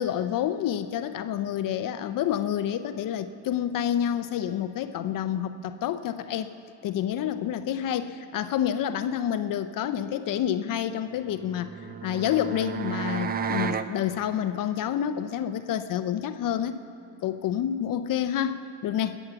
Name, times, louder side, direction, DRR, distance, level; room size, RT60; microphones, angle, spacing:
voice 1, 0.0-6.5 6.8-11.7 12.0-16.8 17.2-19.2, left 10 dB, 55° left, 11 dB, 0.6 m, -28 dB
sound 1, 11.3-13.9, right 6 dB, 25° right, 0.4 m, -32 dB
21.0 x 8.2 x 7.0 m, 2.6 s
cardioid pair, 130°, 40 cm